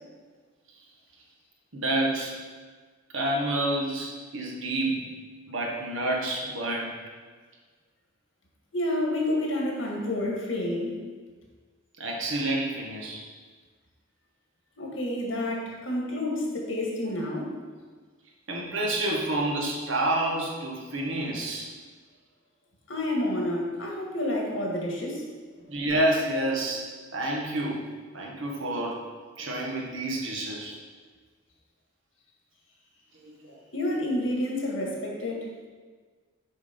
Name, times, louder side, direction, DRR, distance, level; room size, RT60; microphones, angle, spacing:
voice 1, 1.7-2.4 3.1-5.1 5.5-6.9 12.0-13.2 18.5-21.7 25.7-26.8 27.1-27.8 28.1-29.0 29.4-30.7, right 1 dB, 80° right, -1 dB, 1.5 m, -28 dB
voice 2, 8.7-11.0 14.8-17.6 22.9-25.2 33.7-35.5, left 1 dB, 80° left, -1 dB, 1.8 m, -29 dB
6.4 x 5.5 x 5.2 m, 1.5 s
head